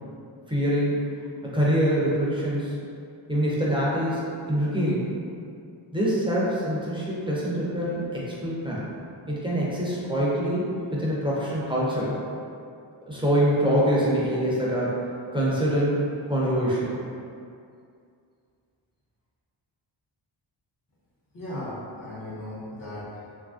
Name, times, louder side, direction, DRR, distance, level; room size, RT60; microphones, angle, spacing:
voice 1, 0.5-1.0 1.4-2.7 3.3-5.1 5.9-8.9 9.3-12.2 13.1-16.0 16.3-17.0, equal, 10° right, -7 dB, 0.4 m, -25 dB
voice 2, 21.3-23.3, left 1 dB, 45° left, -7 dB, 0.6 m, -37 dB
3.0 x 2.5 x 2.3 m, 2.4 s
wide cardioid pair, 120°, 49 cm